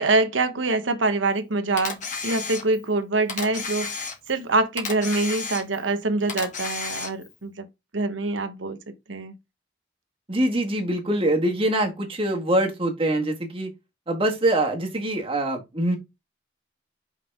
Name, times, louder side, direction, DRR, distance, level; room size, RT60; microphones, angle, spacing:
voice 1, 0.0-7.7 7.9-8.8 9.1-9.3, right 3 dB, 85° right, 1.1 m, -25 dB
Camera, 1.8-2.9 3.3-4.4 4.8-5.9 6.3-7.3, left 4 dB, 40° left, 2.0 m, -32 dB
voice 2, 10.3-13.7 14.1-16.0, right 1 dB, 30° right, 1.8 m, -24 dB
5.8 x 5.5 x 3.6 m
head